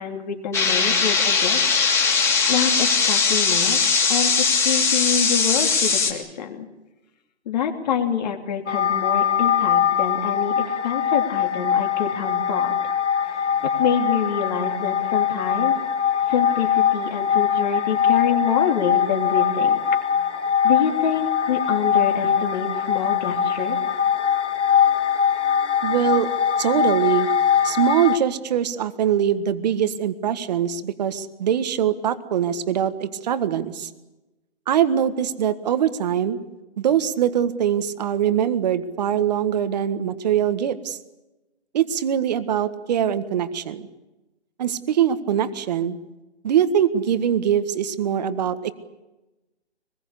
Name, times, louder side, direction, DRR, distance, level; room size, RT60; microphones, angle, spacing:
voice 1, 0.0-1.8 2.5-6.7 7.5-12.7 13.6-15.8 16.3-19.8 20.6-23.8, left 7 dB, 40° left, 4 dB, 3.0 m, -26 dB
sound 1, 0.5-6.1, left 5 dB, 10° left, 3.0 m, -20 dB
sound 2, 8.7-28.2, left 8 dB, 85° left, 2.3 m, -22 dB
voice 2, 25.8-26.3 26.6-27.3 27.6-33.9 34.7-36.4 36.8-41.0 41.7-43.9 44.6-46.0 46.4-48.7, right 9 dB, 35° right, 11 dB, 1.7 m, -22 dB
26.0 x 21.0 x 8.5 m, 1.0 s
hypercardioid pair, 155°, 34 cm